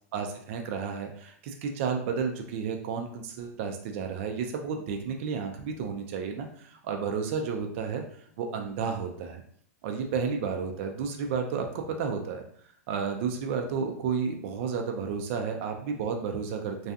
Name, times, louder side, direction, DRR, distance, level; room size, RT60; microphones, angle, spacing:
voice 1, 0.1-8.0 8.4-9.4 9.8-12.4 12.9-16.9, right 6 dB, 55° right, 4 dB, 0.4 m, -32 dB
2.6 x 2.3 x 2.3 m, 0.62 s
hypercardioid pair, 125°, 9 cm